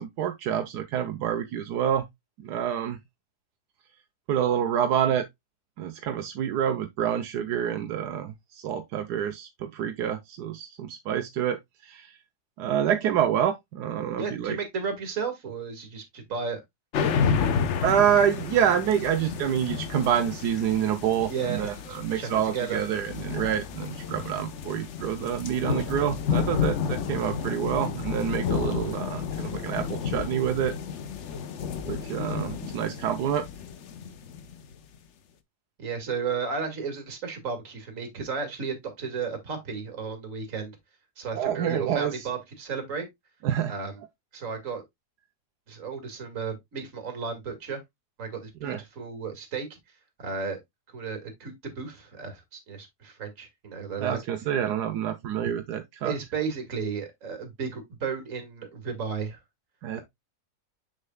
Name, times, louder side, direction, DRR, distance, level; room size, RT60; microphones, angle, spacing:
voice 1, 0.0-2.0 2.4-3.0 4.3-5.2 5.8-11.6 11.8-12.2 12.6-14.6 17.8-30.7 31.8-33.4 41.3-42.3 43.4-43.7 48.6-48.8 54.0-56.1 59.8-60.0, right 9 dB, 85° right, 1.3 m, -27 dB
voice 2, 14.2-16.6 21.3-21.7 22.1-22.8 35.8-40.7 41.2-43.1 43.7-44.0 44.3-44.8 45.7-47.8 48.2-49.8 50.2-50.6 50.9-54.2 56.0-59.4 59.9-60.0, right 5 dB, 55° right, 2.3 m, -33 dB
sound 1, 16.9-34.7, left 6 dB, 55° left, 0.9 m, -31 dB
6.7 x 6.5 x 2.3 m
omnidirectional pair, 1.7 m